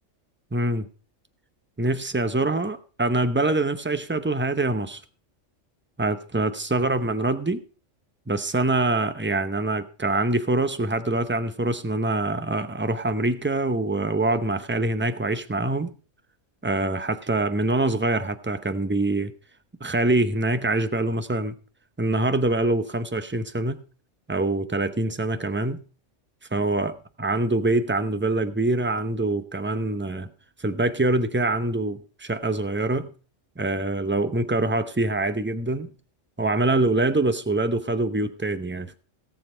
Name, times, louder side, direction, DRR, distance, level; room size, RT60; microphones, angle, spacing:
voice 1, 0.5-0.9 1.8-5.0 6.0-7.6 8.3-15.9 16.6-19.3 19.8-21.6 22.0-23.8 24.3-25.8 26.5-30.3 30.6-33.1 33.6-35.9 36.4-39.0, right 2 dB, 15° right, 11 dB, 0.5 m, -24 dB
17.5 x 7.2 x 4.5 m, 0.38 s
omnidirectional pair, 1.3 m